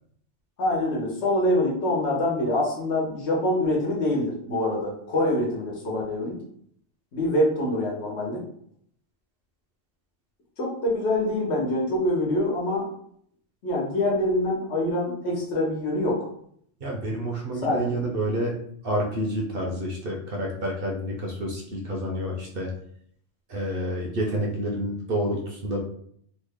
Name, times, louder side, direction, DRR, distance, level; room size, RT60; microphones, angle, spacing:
voice 1, 0.6-6.4 7.1-8.4 10.6-12.9 13.6-16.3 17.6-18.0, left 1 dB, 65° left, -3 dB, 1.2 m, -25 dB
voice 2, 16.8-18.6 18.8-22.7 23.5-25.8, equal, 55° right, -1 dB, 0.8 m, -29 dB
3.1 x 2.2 x 3.5 m, 0.65 s
omnidirectional pair, 1.2 m